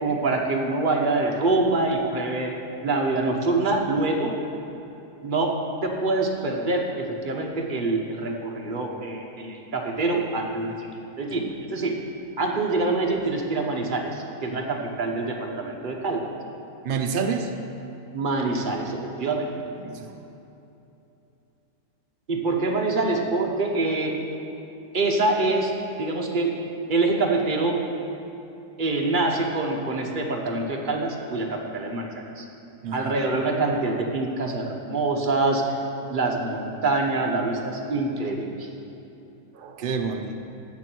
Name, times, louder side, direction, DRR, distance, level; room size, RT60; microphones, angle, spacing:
voice 1, 0.0-4.3 5.2-5.6 5.8-10.9 11.2-12.0 12.4-16.2 18.1-19.5 22.3-24.1 24.9-26.5 26.9-27.8 28.8-32.4 32.9-35.6 36.1-38.7, right 3 dB, 35° right, 0 dB, 1.1 m, -25 dB
voice 2, 16.8-17.5 19.8-20.2 32.8-33.1 36.0-36.2 39.5-40.3, right 5 dB, 85° right, 5 dB, 0.4 m, -29 dB
13.5 x 8.3 x 4.6 m, 2.9 s
omnidirectional pair, 1.8 m